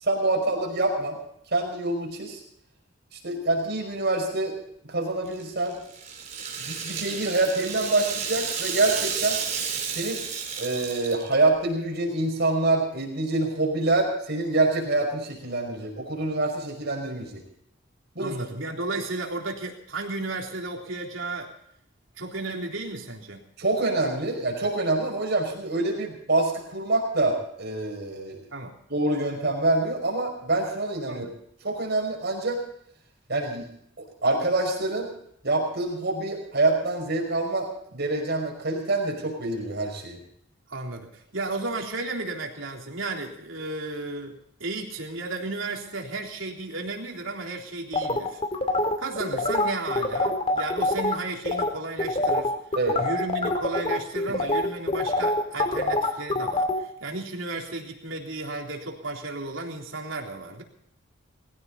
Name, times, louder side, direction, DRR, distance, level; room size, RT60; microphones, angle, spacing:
voice 1, 0.0-1.2 1.5-2.4 3.2-4.5 4.9-5.8 6.6-9.4 9.9-10.2 10.6-17.4 18.2-18.4 23.6-28.4 28.9-31.2 31.6-32.6 33.3-33.7 34.0-35.1 35.4-40.2 52.8-53.0, right 2 dB, 60° right, 1 dB, 5.3 m, -26 dB
Rattle (instrument), 5.2-11.5, right 6 dB, 40° right, 4.2 m, -32 dB
voice 2, 18.2-21.5 22.2-23.4 28.5-28.7 31.1-31.3 40.7-48.4 49.0-52.5 53.0-60.6, right 2 dB, 85° right, 1 dB, 3.6 m, -33 dB
sound 1, 47.9-51.1 51.5-51.7 52.0-56.8, left 2 dB, 30° left, 2.7 m, -25 dB
21.0 x 16.0 x 4.2 m, 0.70 s
head